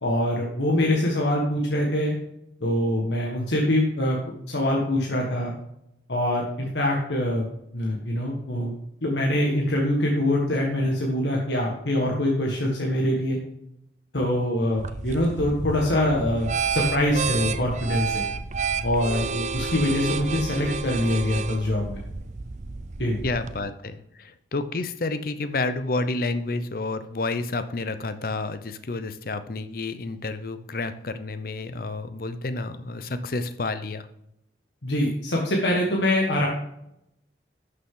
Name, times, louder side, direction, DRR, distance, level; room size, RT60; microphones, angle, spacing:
voice 1, 0.0-2.1 2.6-4.2 4.5-5.5 6.1-7.5 7.7-8.7 9.0-13.4 14.1-18.2 18.8-22.0 23.0-23.2 34.8-36.5, left 1 dB, 80° left, -1 dB, 1.6 m, -24 dB
sound 1, 14.8-23.6, right 5 dB, 40° right, 0.5 m, -30 dB
voice 2, 23.2-34.1, left 3 dB, 55° left, 11 dB, 0.6 m, -30 dB
11.5 x 6.6 x 3.8 m, 0.81 s
head